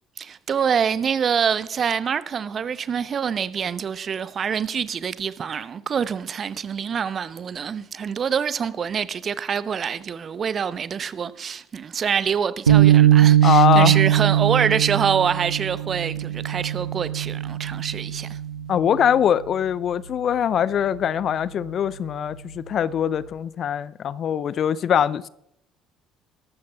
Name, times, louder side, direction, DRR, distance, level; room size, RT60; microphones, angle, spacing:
voice 1, 0.2-18.4, right 7 dB, 40° right, 0.7 m, -25 dB
sound 1, 12.7-19.1, right 11 dB, 85° right, 0.8 m, -20 dB
voice 2, 13.4-14.0 18.7-25.3, left 9 dB, 50° left, 0.4 m, -22 dB
21.5 x 12.5 x 2.3 m
figure-of-eight pair, 55°, 0 cm